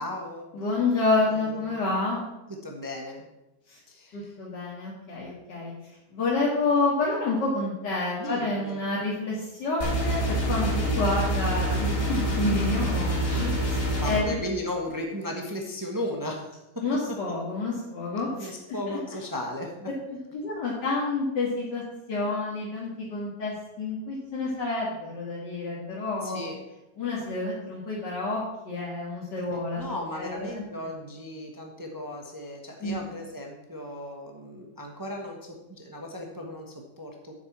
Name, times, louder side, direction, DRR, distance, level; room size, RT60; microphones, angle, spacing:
voice 1, 0.0-0.6 1.3-1.9 2.6-3.3 3.9-4.3 8.2-8.8 13.2-13.5 14.0-16.6 18.4-19.9 26.2-26.6 29.8-37.3, left 1 dB, 15° right, 1 dB, 1.1 m, -36 dB
voice 2, 0.5-2.2 3.7-3.8 4.1-5.7 6.1-14.4 16.8-18.5 18.9-19.0 20.3-21.8 22.1-26.4 27.0-29.9 30.1-30.6 32.8-33.0, left 3 dB, 85° left, -5 dB, 2.5 m, -29 dB
sound 1, 9.8-14.2, right 1 dB, 50° left, 2.3 m, -26 dB
8.1 x 7.1 x 7.2 m, 0.96 s
omnidirectional pair, 1.8 m